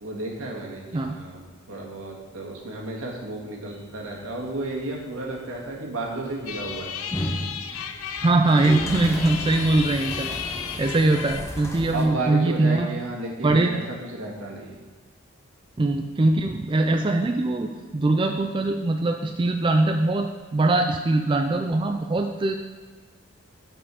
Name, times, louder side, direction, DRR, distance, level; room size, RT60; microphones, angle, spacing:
voice 1, 0.0-6.9 11.9-14.8, right 2 dB, 85° right, -2 dB, 1.7 m, -33 dB
sound 1, 3.7-12.1, equal, 15° left, 0.7 m, -35 dB
sound 2, 6.5-11.5, left 7 dB, 85° left, 0.5 m, -34 dB
voice 2, 8.2-10.4 10.8-12.9 13.4-13.7 15.8-22.5, right 2 dB, 25° right, 4 dB, 0.3 m, -22 dB
7.0 x 5.4 x 5.0 m, 1.4 s
head